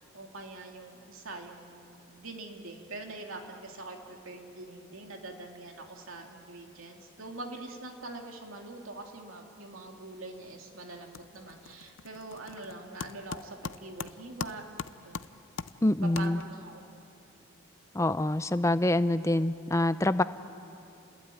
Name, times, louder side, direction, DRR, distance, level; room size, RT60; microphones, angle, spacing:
voice 1, 0.1-14.7 14.9-15.4 16.2-16.8, right 2 dB, 85° right, 2 dB, 2.6 m, -44 dB
sound 1, 10.3-10.6 10.9-16.8, left 5 dB, 65° left, 0.5 m, -42 dB
voice 2, 15.8-16.4 17.9-20.2, left 1 dB, 15° left, 13 dB, 0.5 m, -26 dB
29.0 x 20.5 x 9.2 m, 2.8 s
head